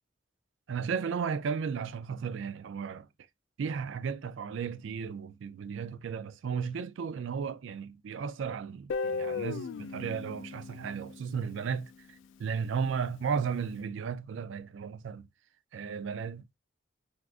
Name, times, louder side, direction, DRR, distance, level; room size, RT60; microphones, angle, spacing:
voice 1, 0.7-3.1 3.6-15.3 15.7-16.6, right 6 dB, 70° right, 0.3 m, -35 dB
Guitar, 8.9-11.8, left 4 dB, 70° left, 0.3 m, -36 dB
3.5 x 2.4 x 2.4 m
head